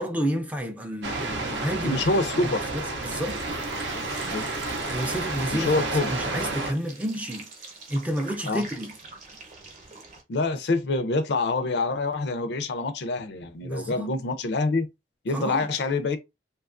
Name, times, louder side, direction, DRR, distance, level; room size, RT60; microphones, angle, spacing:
voice 1, 0.0-2.0 2.4-3.4 4.9-7.5 7.9-8.9 13.6-14.1 15.3-15.7, equal, 10° right, 0.3 m, -30 dB
sound 1, 1.0-6.7, right 2 dB, 85° right, 0.5 m, -30 dB
voice 2, 1.8-2.6 3.9-4.4 5.7-6.1 8.5-8.6 10.3-14.9 15.2-16.2, left 3 dB, 70° left, 0.4 m, -26 dB
sound 2, 2.6-10.2, right 4 dB, 45° right, 0.7 m, -45 dB
2.8 x 2.3 x 2.4 m
head